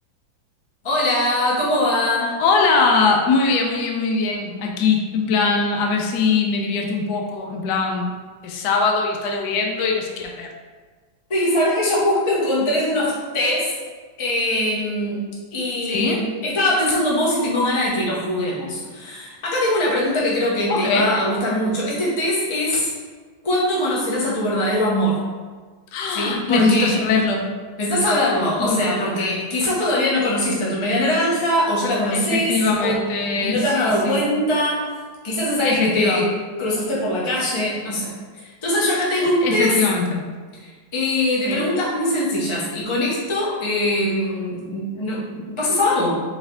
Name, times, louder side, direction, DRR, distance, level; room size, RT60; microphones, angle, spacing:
voice 1, 0.8-2.3 11.3-13.8 14.2-15.2 15.5-22.9 23.4-25.2 26.1-27.0 27.8-33.0 33.4-34.9 35.2-36.3 36.6-38.1 38.6-39.8 40.6-46.2, left 1 dB, 30° left, -5 dB, 0.5 m, -22 dB
voice 2, 2.4-8.1 8.4-10.5 15.9-16.2 20.7-21.1 25.9-27.4 28.6-29.4 32.1-34.2 35.6-36.2 39.1-40.2 41.5-41.7, left 4 dB, 70° left, 1 dB, 1.1 m, -21 dB
4.3 x 3.4 x 3.7 m, 1.5 s
omnidirectional pair, 2.1 m